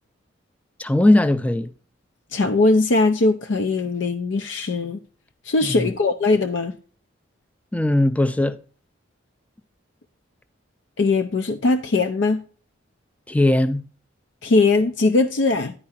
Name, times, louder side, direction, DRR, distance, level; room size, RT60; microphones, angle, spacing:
voice 1, 0.8-1.7 5.6-5.9 7.7-8.6 13.3-13.8, left 1 dB, 5° left, 0.4 m, -19 dB
voice 2, 2.3-5.0 5.4-6.7 11.0-12.4 14.4-15.7, left 3 dB, 65° left, 0.5 m, -20 dB
9.9 x 4.8 x 4.2 m
head